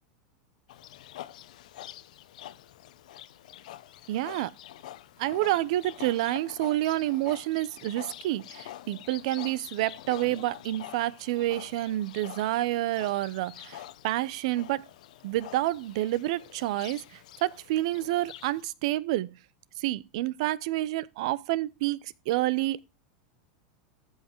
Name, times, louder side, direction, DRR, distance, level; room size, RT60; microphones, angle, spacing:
Livestock farm animals working animals, 0.7-18.6, left 13 dB, 80° left, 0.9 m, -46 dB
voice 1, 4.1-4.5 5.2-14.8 15.2-17.0 17.4-19.3 19.8-22.8, right 16 dB, 60° right, 0.7 m, -29 dB
13.5 x 5.7 x 4.5 m
supercardioid pair, 155°, 4 cm